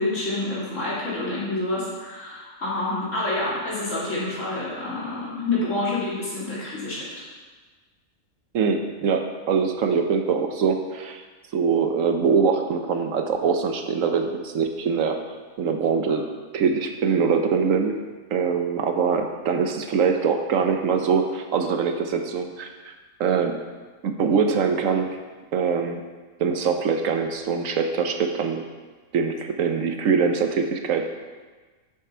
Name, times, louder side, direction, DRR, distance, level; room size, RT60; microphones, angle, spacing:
voice 1, 0.0-7.0, left 2 dB, 60° left, -8 dB, 3.2 m, -28 dB
voice 2, 8.5-11.2 11.5-15.2 15.6-16.2 16.5-18.0 18.3-22.9 23.2-23.6 24.0-25.2 25.5-26.0 26.4-28.7 29.1-31.1, right 5 dB, 70° right, 5 dB, 1.1 m, -23 dB
7.7 x 6.8 x 5.6 m, 1.3 s
omnidirectional pair, 1.5 m